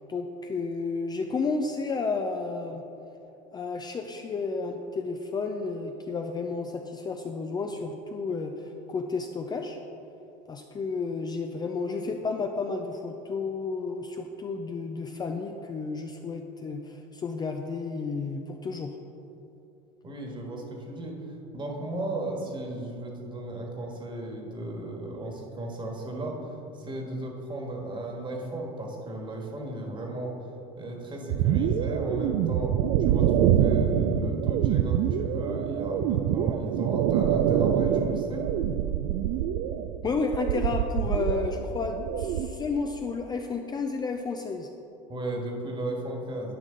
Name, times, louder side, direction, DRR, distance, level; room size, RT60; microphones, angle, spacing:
voice 1, 0.1-2.8 3.5-9.8 10.5-19.0 40.0-44.7, left 4 dB, 20° left, 4 dB, 0.4 m, -32 dB
voice 2, 20.0-21.2 21.5-26.3 26.8-30.3 30.8-32.8 33.0-38.4 45.1-46.5, right 1 dB, 25° right, 0 dB, 1.5 m, -35 dB
sound 1, 31.3-42.5, right 9 dB, 65° right, 0.4 m, -25 dB
11.0 x 5.0 x 3.9 m, 2.9 s
supercardioid pair, 105°, 19 cm